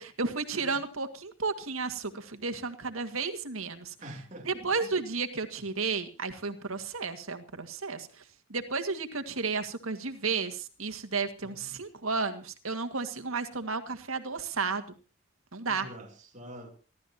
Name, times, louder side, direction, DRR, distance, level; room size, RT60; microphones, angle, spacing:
voice 1, 0.0-3.9 4.4-8.1 8.5-14.8 15.5-15.9, right 4 dB, 80° right, 2.0 m, -33 dB
voice 2, 4.0-4.9 6.5-6.7 11.4-11.7 15.7-16.7, right 1 dB, 35° right, 2.9 m, -46 dB
28.5 x 12.5 x 2.9 m
head